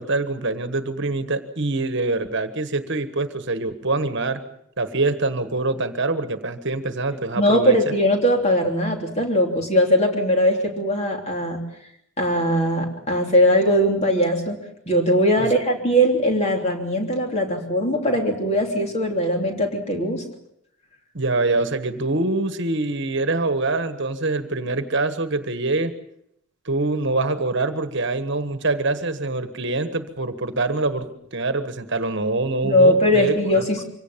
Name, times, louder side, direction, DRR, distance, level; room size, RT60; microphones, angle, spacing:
voice 1, 0.0-4.4 4.8-7.8 15.4-15.5 21.1-25.9 26.6-33.8, right 2 dB, 55° right, 10 dB, 1.4 m, -25 dB
voice 2, 7.4-11.6 12.2-14.6 14.9-20.2 32.6-33.8, equal, 30° left, 2 dB, 3.2 m, -20 dB
24.5 x 17.5 x 7.4 m, 0.73 s
head